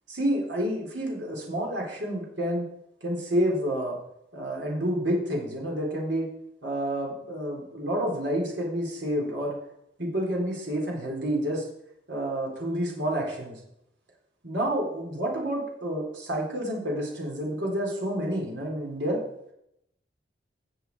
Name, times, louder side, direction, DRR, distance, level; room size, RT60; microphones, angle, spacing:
voice 1, 0.1-2.6 3.0-4.0 4.3-6.3 6.6-9.5 10.0-11.6 12.1-13.6 14.4-19.2, equal, 80° right, -2 dB, 3.9 m, -29 dB
19.0 x 7.1 x 4.7 m, 0.80 s
head